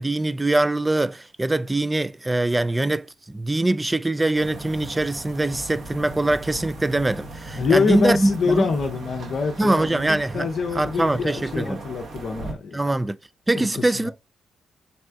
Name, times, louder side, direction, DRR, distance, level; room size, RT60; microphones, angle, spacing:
voice 1, 0.0-8.7 9.6-10.5 10.8-11.8 12.7-13.2 13.5-14.1, right 2 dB, 20° right, 0.4 m, -23 dB
sound 1, 4.3-12.5, right 2 dB, 60° right, 1.1 m, -38 dB
voice 2, 7.6-12.8 13.5-14.1, left 5 dB, 60° left, 0.6 m, -25 dB
4.2 x 3.3 x 3.3 m
hypercardioid pair, 40°, 0 cm